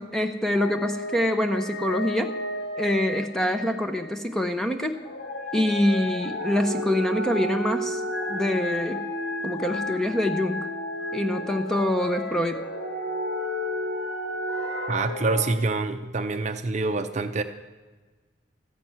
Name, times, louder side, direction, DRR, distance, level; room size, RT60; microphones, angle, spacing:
voice 1, 0.0-2.3 2.7-4.9 5.5-8.0 8.3-9.0 9.4-10.7 11.1-12.6, left 1 dB, 5° left, 6 dB, 0.7 m, -25 dB
sound 1, 0.5-4.3 4.9-15.5, left 1 dB, 80° left, 2.3 m, -32 dB
voice 2, 14.9-17.4, right 3 dB, 35° right, 7 dB, 0.6 m, -26 dB
14.0 x 6.0 x 9.2 m, 1.3 s
head